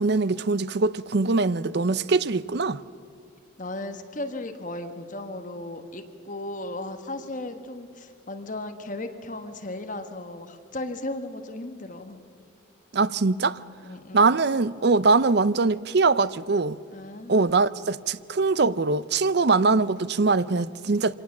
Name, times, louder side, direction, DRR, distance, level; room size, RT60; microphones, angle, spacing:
voice 1, 0.0-2.8 12.9-13.6 14.1-16.8 17.3-21.1, right 3 dB, 50° right, 0.6 m, -22 dB
voice 2, 3.6-12.2 13.8-14.4 16.9-17.7, left 2 dB, 40° left, 1.3 m, -36 dB
25.0 x 18.5 x 7.3 m
head